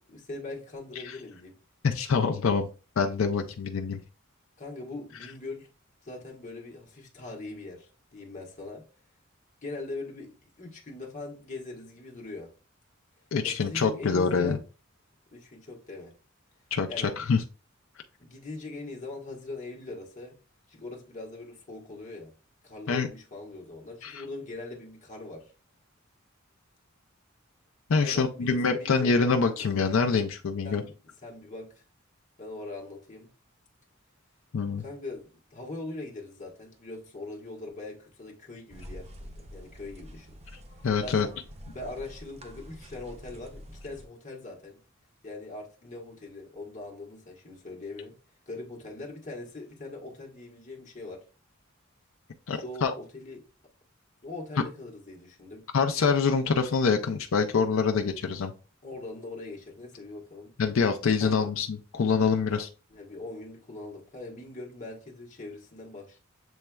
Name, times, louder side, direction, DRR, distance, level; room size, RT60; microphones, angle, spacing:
voice 1, 0.0-1.6 4.6-5.7 6.0-8.8 9.6-12.5 13.4-14.6 15.3-16.1 16.9-17.2 18.2-20.4 20.7-22.3 22.6-25.5 28.0-29.1 30.6-30.9 31.2-31.7 32.4-33.3 34.8-35.2 35.5-40.4 40.8-41.3 41.7-44.8 45.2-48.1 48.5-51.2 52.5-53.4 54.2-55.6 58.8-60.5 61.2-61.5 62.5-62.6 62.9-66.2, left 2 dB, 40° left, 1.4 m, -41 dB
voice 2, 1.8-2.7 3.0-4.0 13.3-14.6 16.7-17.4 22.9-23.1 24.0-24.2 27.9-30.8 34.5-34.8 40.8-41.3 52.5-52.9 55.7-58.5 60.6-62.7, left 5 dB, 70° left, 0.5 m, -25 dB
sound 1, 38.7-44.1, equal, 30° right, 0.6 m, -46 dB
7.1 x 3.2 x 2.2 m
head